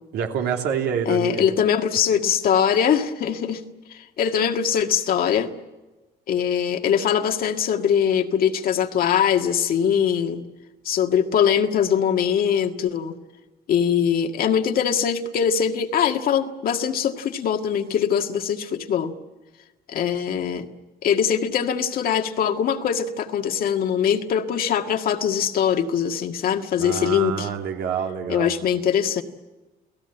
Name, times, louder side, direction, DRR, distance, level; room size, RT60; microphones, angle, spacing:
voice 1, 0.1-1.5 26.8-28.5, right 7 dB, 80° right, 3 dB, 3.1 m, -27 dB
voice 2, 1.1-3.6 3.9-5.5 6.3-10.4 10.9-13.1 13.7-19.1 19.9-20.7 21.0-27.5 28.3-29.2, left 8 dB, 60° left, 5 dB, 1.9 m, -22 dB
29.5 x 17.0 x 9.0 m, 1.2 s
cardioid pair, 110°, 17 cm